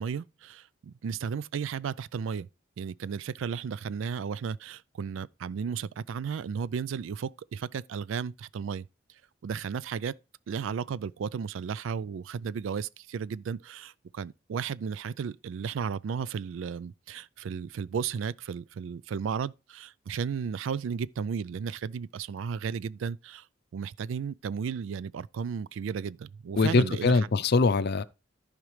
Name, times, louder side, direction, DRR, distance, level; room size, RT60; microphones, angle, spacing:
voice 1, 0.0-2.5 2.8-8.9 9.4-10.2 10.5-23.5 23.7-27.2, right 6 dB, 70° right, 0.3 m, -34 dB
voice 2, 26.6-28.0, left 3 dB, 55° left, 0.5 m, -23 dB
14.0 x 5.0 x 3.2 m
head